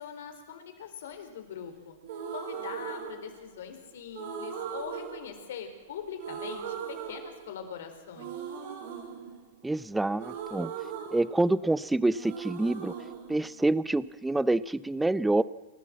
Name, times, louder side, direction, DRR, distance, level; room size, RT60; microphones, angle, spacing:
voice 1, 0.0-2.0 2.3-8.4, left 7 dB, 70° left, 7 dB, 4.2 m, -42 dB
sound 1, 2.0-3.7 4.1-5.9 6.2-7.8 8.1-11.8 12.1-14.2, right 7 dB, 65° right, 6.6 m, -39 dB
voice 2, 9.6-10.7 11.1-12.9 13.3-15.4, right 2 dB, 5° right, 18 dB, 0.6 m, -27 dB
28.5 x 12.5 x 7.6 m, 1.1 s
hypercardioid pair, 120°, 0 cm